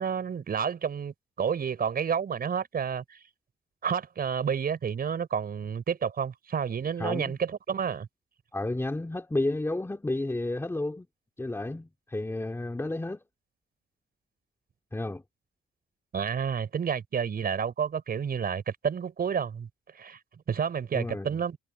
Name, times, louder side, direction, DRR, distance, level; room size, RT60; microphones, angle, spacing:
voice 1, 0.0-3.2 3.8-8.1 16.1-19.7 19.9-20.2 20.5-21.6, right 7 dB, 50° right, 5.4 m, -30 dB
voice 2, 7.0-7.4 8.5-11.1 11.4-13.2 14.9-15.2 20.9-21.4, left 2 dB, 10° left, 2.5 m, -31 dB
cardioid pair, 90°, 20 cm